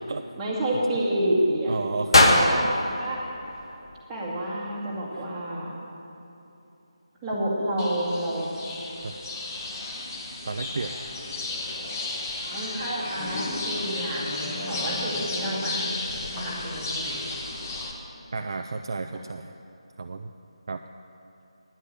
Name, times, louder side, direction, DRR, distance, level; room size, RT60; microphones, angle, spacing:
voice 1, 0.3-1.8 2.2-2.6 3.0-3.2 4.1-5.8 7.2-8.5 12.5-15.8 16.3-17.2 19.1-19.2, right 1 dB, 10° right, -7 dB, 2.0 m, -29 dB
voice 2, 1.7-2.4 5.1-5.3 9.0-9.2 10.4-10.9 18.3-19.5 20.0-20.3 20.7-20.8, right 4 dB, 45° right, 6 dB, 0.4 m, -32 dB
sound 1, 2.1-4.3, left 1 dB, 50° left, 1.4 m, -22 dB
sound 2, 7.8-17.9, left 2 dB, 30° left, 1.1 m, -33 dB
10.0 x 8.2 x 8.8 m, 3.0 s
figure-of-eight pair, 160°, 3 cm